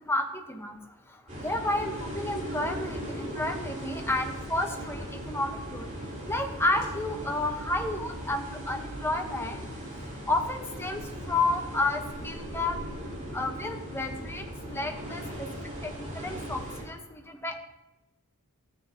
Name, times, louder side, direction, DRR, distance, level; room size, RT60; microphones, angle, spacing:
voice 1, 0.1-0.8 1.4-5.9 6.3-9.6 10.3-11.0 11.3-12.8 13.3-14.4 14.7-15.5 16.0-16.6 16.9-17.6, left 2 dB, 10° left, 3 dB, 1.1 m, -31 dB
sound 1, 1.3-16.8, equal, 35° right, 3.4 m, -38 dB
13.5 x 9.0 x 2.9 m, 0.99 s
head